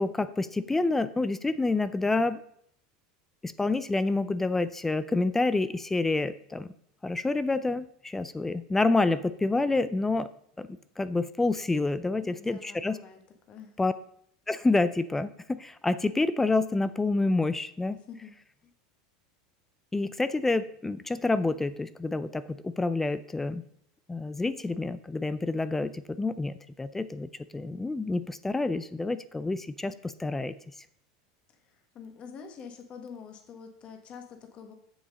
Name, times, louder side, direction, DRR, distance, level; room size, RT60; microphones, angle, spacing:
voice 1, 0.0-2.4 3.4-6.7 7.0-10.3 10.6-10.7 11.0-13.0 13.8-13.9 14.5-18.0 19.9-23.6 24.1-30.5, left 3 dB, 10° left, 14 dB, 0.4 m, -28 dB
voice 2, 12.2-13.2 13.5-13.7 18.1-18.3 18.6-18.7 31.6-34.7, left 6 dB, 35° left, 5 dB, 1.5 m, -46 dB
7.3 x 7.1 x 5.2 m, 0.68 s
supercardioid pair, 120°, 3 cm